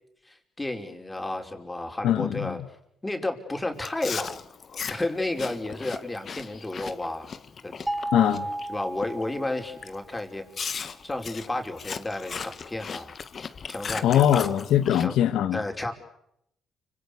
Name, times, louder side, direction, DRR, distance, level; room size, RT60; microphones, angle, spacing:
voice 1, 0.3-2.6 3.0-4.4 4.9-7.3 7.6-7.7 8.7-10.4 11.0-13.2 13.7-14.5 15.0-15.2 15.5-15.9, left 2 dB, 15° left, 5.2 m, -32 dB
voice 2, 2.0-2.6 8.1-8.5 14.0-15.6, left 10 dB, 85° left, 2.1 m, -22 dB
Chewing mastication, 3.8-8.7 9.0-9.3 9.8-10.0 10.5-15.1, left 6 dB, 45° left, 1.6 m, -37 dB
sound 1, 7.9-10.1, right 1 dB, 10° right, 2.7 m, -33 dB
30.0 x 26.0 x 6.7 m
cardioid pair, 90°, 0 cm